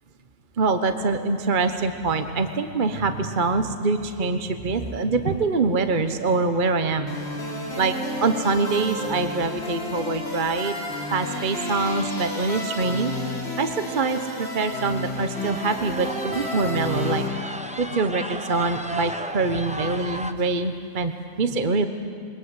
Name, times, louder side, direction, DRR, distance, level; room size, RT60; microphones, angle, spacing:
voice 1, 0.6-7.1 7.8-7.9 8.2-10.8 11.1-13.1 13.6-21.9, right 3 dB, 35° right, 7 dB, 0.8 m, -24 dB
sound 1, 4.7-5.1 5.7-5.8 6.1-6.7 9.9-10.0 11.1-11.2 11.4-11.8 12.2-12.3 13.1-13.2 13.4-13.6 14.0-14.4 15.0-20.3, equal, 10° right, 0.4 m, -36 dB
sound 2, 7.1-17.3, left 1 dB, 35° left, 4.7 m, -31 dB
27.5 x 23.0 x 8.0 m, 2.6 s
omnidirectional pair, 2.0 m